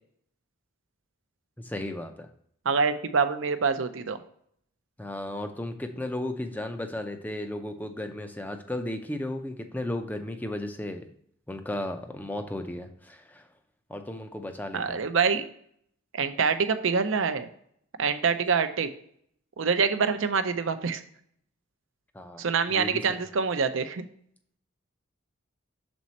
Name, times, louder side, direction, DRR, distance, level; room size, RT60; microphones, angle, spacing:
voice 1, 1.6-2.3 5.0-11.1 11.5-13.5 13.9-15.0 22.1-23.2, left 1 dB, 10° left, 6 dB, 0.5 m, -35 dB
voice 2, 2.7-4.2 14.7-15.5 16.1-17.5 18.0-18.9 19.6-21.0 22.4-24.0, right 5 dB, 65° right, 10 dB, 0.5 m, -25 dB
6.2 x 4.1 x 4.1 m, 0.67 s
head